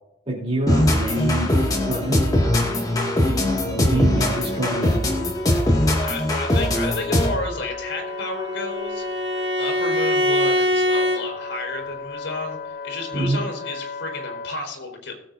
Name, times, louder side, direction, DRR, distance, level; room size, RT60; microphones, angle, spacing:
voice 1, 0.3-1.5 1.8-2.5 2.9-3.0 3.6-5.2 13.1-13.4, right 2 dB, 35° right, -3 dB, 3.3 m, -26 dB
sound 1, 0.7-7.5, left 1 dB, 20° left, 2.0 m, -21 dB
Wind instrument woodwind instrument, 3.7-14.6, left 4 dB, 55° left, 1.0 m, -36 dB
voice 2, 6.0-9.3 9.6-15.1, left 2 dB, 75° left, 3 dB, 4.2 m, -32 dB
Bowed string instrument, 7.7-11.2, left 1 dB, 90° right, 1.7 m, -23 dB
20.5 x 7.9 x 2.6 m, 0.86 s
head